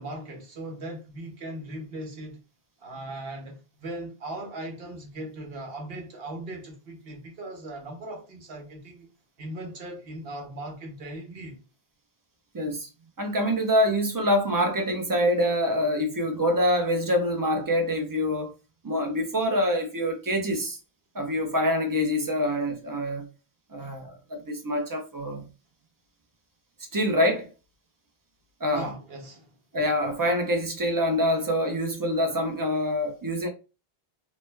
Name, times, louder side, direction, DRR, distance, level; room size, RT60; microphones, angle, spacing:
voice 1, 0.0-2.4 2.8-9.1 9.4-11.6 23.8-23.9 28.7-29.5, right 1 dB, 65° right, 1.1 m, -38 dB
voice 2, 12.5-12.9 13.2-18.5 18.8-20.8 21.1-23.3 23.7-25.4 26.9-27.5 28.6-28.9 29.7-33.5, equal, 25° right, 0.6 m, -25 dB
3.2 x 2.1 x 3.3 m
omnidirectional pair, 1.1 m